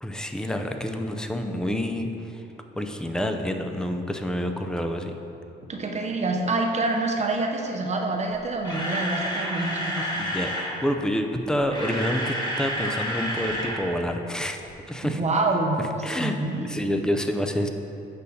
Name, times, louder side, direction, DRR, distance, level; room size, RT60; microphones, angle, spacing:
voice 1, 0.0-2.1 2.3-2.4 2.8-5.1 10.2-14.6 14.9-15.2 16.0-16.3 16.6-17.7, equal, 5° left, 5 dB, 0.4 m, -28 dB
voice 2, 5.7-10.2 15.0-15.9 16.2-16.6, right 2 dB, 35° right, 2 dB, 0.7 m, -26 dB
Camera, 8.3-10.7 11.5-13.8 14.1-14.2 14.7-14.8, equal, 20° left, 1.1 m, -30 dB
8.2 x 5.5 x 2.7 m, 2.8 s
cardioid pair, 90°, 20 cm